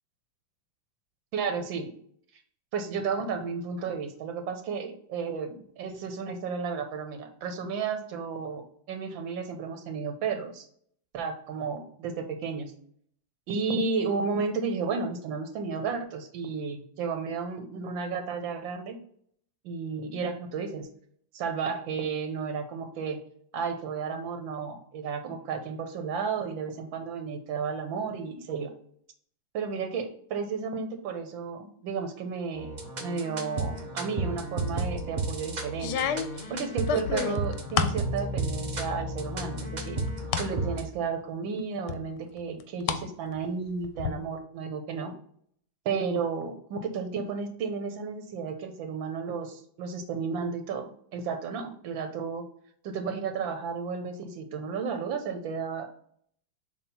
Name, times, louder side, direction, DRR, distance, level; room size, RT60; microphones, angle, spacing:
voice 1, 1.3-1.9 2.7-10.7 11.1-12.7 13.5-19.0 19.6-20.9 21.3-23.2 23.5-28.7 29.5-32.7 33.0-36.0 36.5-40.0 40.4-45.1 45.8-52.5 52.8-56.0, right 5 dB, 90° right, 6 dB, 1.6 m, -33 dB
sound 1, 32.5-40.8, right 2 dB, 45° right, 0.5 m, -33 dB
sound 2, 34.7-35.1 35.8-38.0 38.5-39.0 39.4-40.5 40.9-41.0 41.9-43.0 43.3-44.1, left 8 dB, 75° left, 1.1 m, -31 dB
7.1 x 2.4 x 5.4 m, 0.63 s
omnidirectional pair, 2.1 m